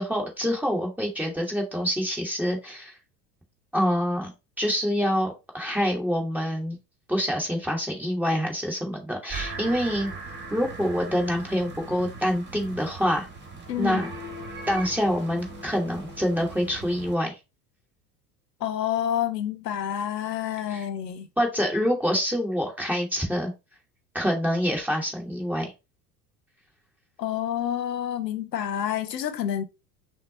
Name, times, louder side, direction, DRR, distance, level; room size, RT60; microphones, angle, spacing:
voice 1, 0.0-2.9 3.7-4.3 4.6-6.8 7.1-10.1 10.5-13.3 13.8-14.1 14.7-17.3 20.7-20.8 21.4-23.5 24.1-25.7, equal, 5° right, 1.2 m, -26 dB
sound 1, 9.3-17.1, right 2 dB, 20° right, 1.4 m, -39 dB
voice 2, 13.7-14.0 18.6-21.3 27.2-29.6, left 10 dB, 75° left, 0.7 m, -28 dB
5.9 x 2.0 x 3.9 m
figure-of-eight pair, 75°, 49 cm